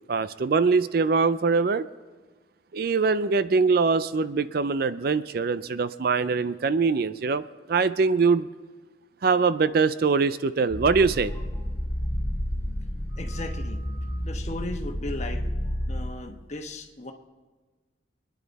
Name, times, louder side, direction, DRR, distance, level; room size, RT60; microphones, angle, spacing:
voice 1, 0.1-1.8 2.7-7.4 7.7-8.5 9.2-11.3, right 4 dB, 50° right, 14 dB, 0.4 m, -23 dB
sound 1, 10.7-16.1, equal, 10° left, 2.2 m, -30 dB
voice 2, 13.2-13.8 14.2-15.4 15.9-17.1, left 2 dB, 35° left, 4 dB, 1.2 m, -36 dB
25.5 x 10.0 x 4.1 m, 1.3 s
head